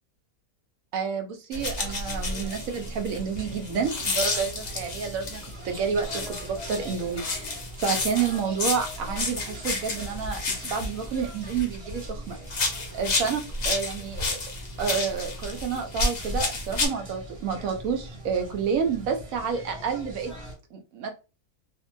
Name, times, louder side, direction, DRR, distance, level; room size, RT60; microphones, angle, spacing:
voice 1, 0.9-12.4 12.9-14.4 14.8-20.3 20.7-21.1, right 6 dB, 70° right, 5 dB, 1.0 m, -29 dB
sound 1, 1.5-5.5 6.0-12.1 12.5-16.9, left 3 dB, 80° left, 0.3 m, -31 dB
sound 2, 1.5-20.5, right 1 dB, 45° right, 1.0 m, -42 dB
2.7 x 2.5 x 2.5 m, 0.31 s
omnidirectional pair, 1.6 m